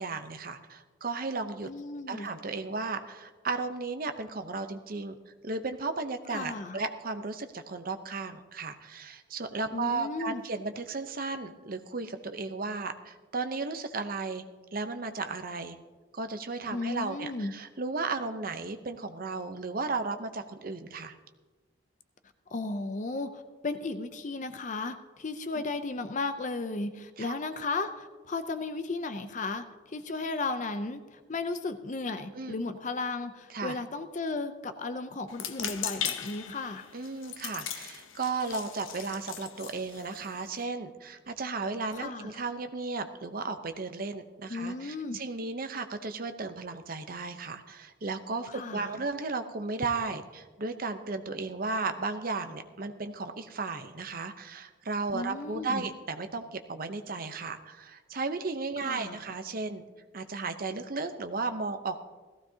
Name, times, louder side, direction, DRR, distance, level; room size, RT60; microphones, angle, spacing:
voice 1, 0.0-1.7 2.1-5.2 5.4-14.4 14.7-15.8 16.1-21.1 25.5-25.6 27.2-27.4 32.3-32.5 33.5-33.8 36.9-59.8 60.1-62.0, right 3 dB, 45° right, 8 dB, 0.8 m, -35 dB
voice 2, 1.6-2.3 6.3-6.8 9.7-10.4 16.7-17.5 22.5-36.9 41.9-42.5 44.5-45.2 48.5-49.0 55.1-55.9 58.8-59.2, left 3 dB, 40° left, 10 dB, 0.5 m, -35 dB
sound 1, 35.3-40.6, left 9 dB, 85° left, 0.8 m, -38 dB
17.0 x 15.0 x 2.8 m, 1.3 s
head